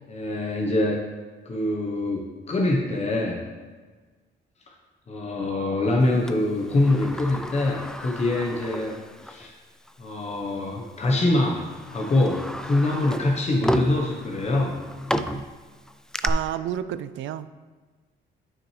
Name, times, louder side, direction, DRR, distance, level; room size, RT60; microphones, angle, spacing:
voice 1, 0.1-1.0 1.4-3.4 5.1-9.0 9.2-9.5 10.0-14.8, left 2 dB, 35° left, -1 dB, 1.1 m, -24 dB
Sliding door, 6.3-9.5 9.9-10.0 10.9-11.1 11.6-16.3, equal, 5° left, 0.3 m, -32 dB
voice 2, 16.2-17.5, right 11 dB, 70° right, 13 dB, 0.4 m, -30 dB
9.0 x 6.2 x 3.2 m, 1.4 s
cardioid pair, 90°, 20 cm